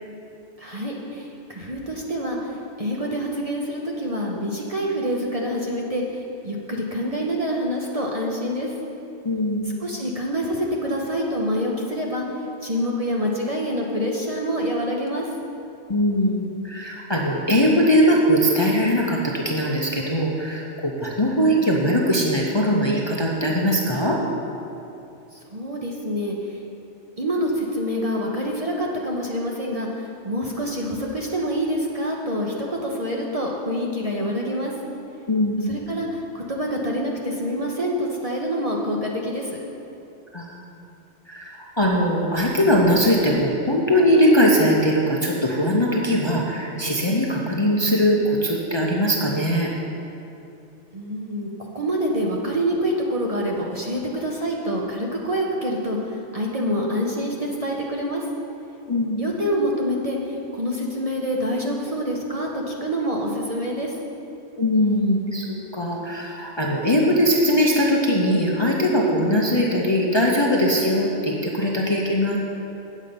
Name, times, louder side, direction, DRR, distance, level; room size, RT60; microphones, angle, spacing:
voice 1, 0.6-8.7 9.8-12.2 12.6-15.3 25.3-26.6 27.2-34.7 35.7-39.6 50.9-58.2 59.2-64.0, equal, 35° right, -2 dB, 0.8 m, -26 dB
voice 2, 9.2-9.8 15.9-24.2 35.3-35.7 40.3-40.6 41.3-49.7 58.9-59.2 64.6-65.5 65.7-72.4, equal, 25° left, -3 dB, 0.7 m, -20 dB
8.4 x 7.4 x 5.2 m, 2.7 s
omnidirectional pair, 1.2 m